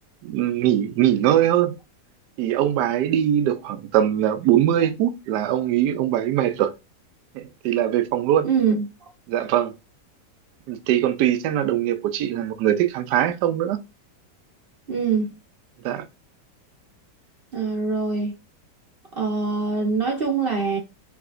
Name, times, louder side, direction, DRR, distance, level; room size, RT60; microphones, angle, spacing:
voice 1, 0.2-1.8 2.4-6.7 7.3-8.5 9.3-9.7 10.7-13.8 15.8-16.0, right 11 dB, 75° right, 1.1 m, -21 dB
voice 2, 8.4-8.8 14.9-15.3 17.5-18.4 19.2-20.8, right 5 dB, 40° right, 1.0 m, -23 dB
4.8 x 3.4 x 2.5 m
omnidirectional pair, 1.9 m